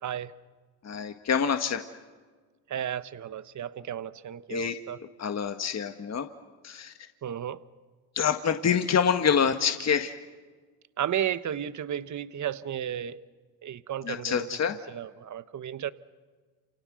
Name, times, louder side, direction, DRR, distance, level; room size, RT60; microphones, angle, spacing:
voice 1, 0.0-0.3 2.7-5.0 7.2-7.6 11.0-13.2 13.6-14.5 14.9-15.9, right 10 dB, 40° right, 14 dB, 1.2 m, -33 dB
voice 2, 0.8-1.8 4.5-4.7 5.2-6.3 6.6-6.9 8.2-10.1 14.1-14.8, left 7 dB, 35° left, 7 dB, 1.8 m, -26 dB
30.0 x 29.0 x 6.4 m, 1.4 s
supercardioid pair, 75°, 45 cm